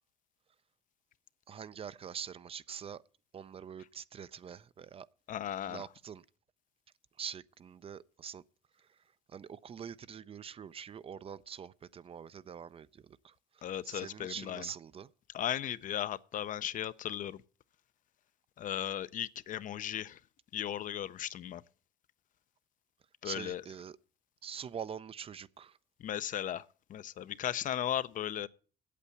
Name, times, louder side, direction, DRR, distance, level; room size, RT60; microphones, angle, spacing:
voice 1, 1.5-3.0 3.3-5.1 5.7-6.2 7.2-8.4 9.3-15.1 23.2-24.0 24.4-25.8, right 7 dB, 35° right, 0.5 m, -44 dB
voice 2, 5.3-5.8 13.6-14.6 15.3-17.4 18.6-20.2 20.5-21.6 23.2-23.6 26.0-26.6 26.9-28.5, left 10 dB, 50° left, 0.5 m, -36 dB
8.4 x 8.1 x 8.4 m
cardioid pair, 110°, 17 cm